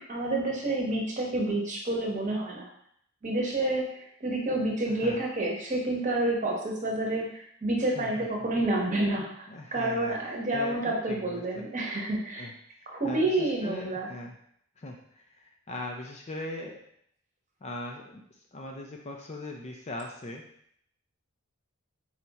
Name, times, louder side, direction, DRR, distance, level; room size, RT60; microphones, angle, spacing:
voice 1, 0.1-2.7 3.2-3.8 4.2-12.5 12.9-14.1, right 2 dB, 35° right, -2 dB, 0.9 m, -29 dB
voice 2, 4.9-5.2 8.0-8.3 9.5-10.2 10.5-11.7 12.4-14.3 14.8-16.8 17.6-18.2 18.5-20.4, left 1 dB, 30° left, 1 dB, 0.4 m, -40 dB
4.3 x 2.4 x 4.0 m, 0.68 s
head